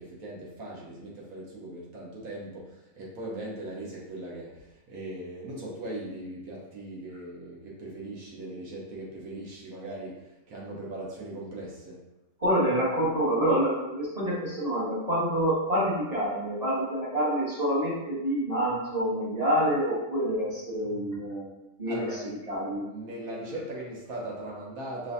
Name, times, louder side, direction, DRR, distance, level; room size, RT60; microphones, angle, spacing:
voice 1, 0.0-12.0 21.9-22.4 22.9-25.1, right 1 dB, 60° right, -4 dB, 1.2 m, -39 dB
voice 2, 12.4-21.5 21.8-22.0 22.5-22.9, equal, 25° right, -9 dB, 1.2 m, -27 dB
5.4 x 2.5 x 2.6 m, 0.95 s
omnidirectional pair, 1.8 m